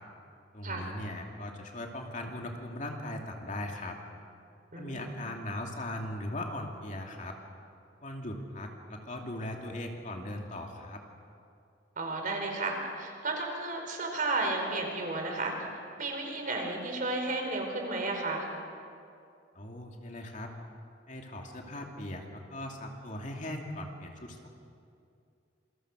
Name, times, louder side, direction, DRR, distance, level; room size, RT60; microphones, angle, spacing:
voice 1, 0.5-4.0 4.8-7.4 8.0-11.0 19.5-20.5 21.1-24.5, left 1 dB, 45° left, 1 dB, 2.7 m, -39 dB
voice 2, 4.7-5.1 12.0-15.7 16.0-18.5, right 2 dB, 50° right, 2 dB, 4.8 m, -33 dB
27.5 x 24.0 x 6.3 m, 2.5 s
head